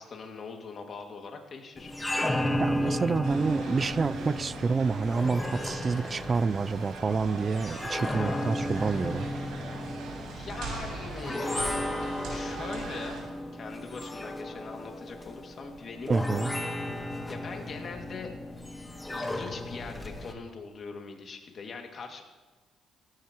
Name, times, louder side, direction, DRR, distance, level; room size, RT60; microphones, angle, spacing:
voice 1, 0.0-1.9 2.8-3.0 8.1-8.7 10.1-11.9 12.3-13.3 13.5-16.5 17.3-18.3 19.1-22.2, left 4 dB, 45° left, 3 dB, 2.2 m, -42 dB
sound 1, 1.8-20.3, left 1 dB, 15° left, 1.3 m, -34 dB
voice 2, 2.6-9.3 16.1-16.5, right 4 dB, 30° right, 18 dB, 0.4 m, -28 dB
sound 2, 3.2-13.2, right 3 dB, 80° right, 4.8 m, -41 dB
18.0 x 16.0 x 3.0 m, 1.2 s
cardioid pair, 105°, 0 cm